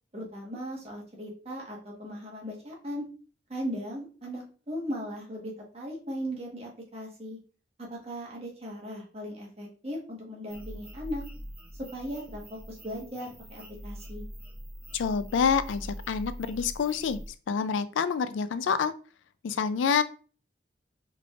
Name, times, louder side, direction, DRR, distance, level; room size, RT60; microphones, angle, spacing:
voice 1, 0.1-3.1 3.5-7.4 7.8-11.2 11.9-14.2, equal, 35° right, -2 dB, 1.3 m, -38 dB
sound 1, 10.5-17.3, equal, 10° right, 0.6 m, -43 dB
voice 2, 14.9-17.2 17.5-18.9 19.4-20.0, left 6 dB, 85° left, 13 dB, 0.4 m, -27 dB
5.0 x 3.3 x 2.4 m, 0.38 s
head